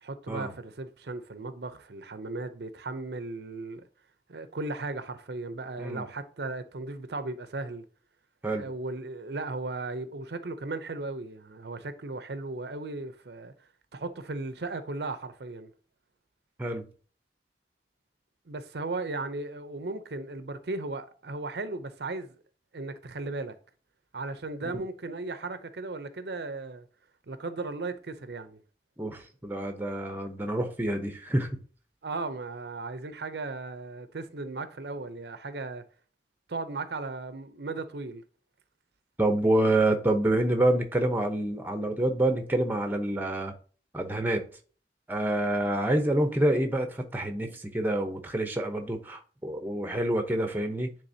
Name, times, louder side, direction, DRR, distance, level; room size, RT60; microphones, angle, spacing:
voice 1, 0.0-3.8 4.3-7.8 8.6-15.7 18.5-22.3 22.7-23.6 24.1-26.9 27.3-28.6 32.0-35.8 36.5-38.2, right 3 dB, 65° right, 0.6 m, -36 dB
voice 2, 29.0-31.6 39.2-43.5 43.9-44.4 45.1-50.9, right 1 dB, 10° right, 0.8 m, -27 dB
9.9 x 3.4 x 2.8 m
head